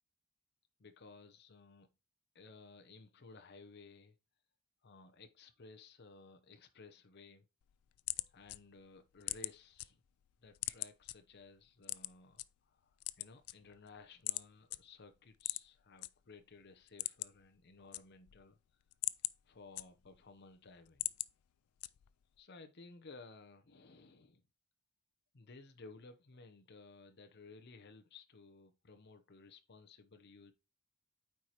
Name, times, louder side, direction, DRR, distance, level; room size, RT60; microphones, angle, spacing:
voice 1, 0.8-1.9 2.3-4.1 4.8-7.5 8.3-10.0 10.4-18.6 19.4-21.2 22.4-24.4 25.3-30.5, left 3 dB, 50° left, 0.7 m, -57 dB
sound 1, 7.6-9.9 10.2-11.1 11.8-12.5 12.9-13.9 14.3-14.4 14.7-14.8 15.4-16.1 16.4-16.5 16.8-17.5 17.7-18.4 18.8-20.3 20.7-21.3 21.8-22.2, left 19 dB, 85° left, 0.4 m, -40 dB
8.8 x 4.7 x 2.9 m
head